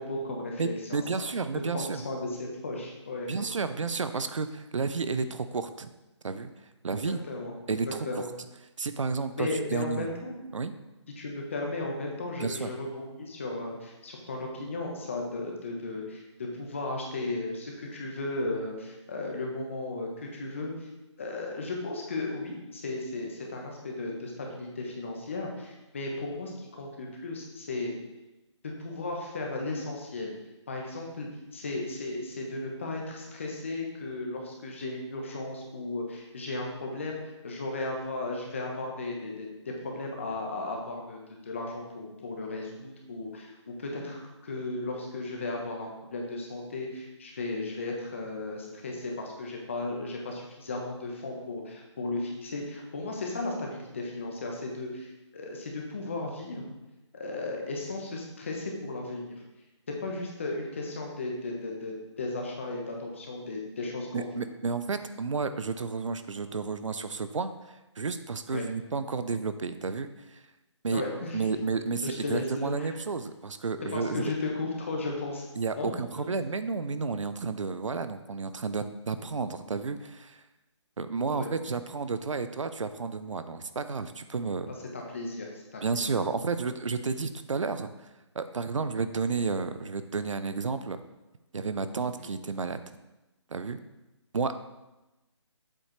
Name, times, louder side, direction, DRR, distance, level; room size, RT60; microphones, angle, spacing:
voice 1, 0.0-1.0 1.7-3.4 7.3-7.5 8.1-8.3 9.4-10.3 11.2-20.9 21.2-27.9 28.8-30.3 30.7-31.3 31.5-39.5 39.8-56.6 57.1-59.4 60.0-64.4 68.5-68.6 70.9-71.5 72.0-72.9 73.9-75.5 75.8-75.9 81.3-81.5 84.7-86.2, left 2 dB, 25° left, 0 dB, 1.1 m, -35 dB
voice 2, 0.6-2.0 3.3-5.9 6.2-6.5 6.8-7.2 7.7-8.2 8.8-10.1 10.5-10.7 12.4-12.7 64.1-70.4 70.8-71.0 71.3-74.3 75.6-80.4 81.0-84.7 85.8-88.1 88.3-91.0 91.5-92.8 93.5-93.8 94.3-94.5, right 4 dB, 90° right, 11 dB, 0.7 m, -31 dB
7.9 x 6.5 x 3.2 m, 1.0 s
hypercardioid pair, 175°, 16 cm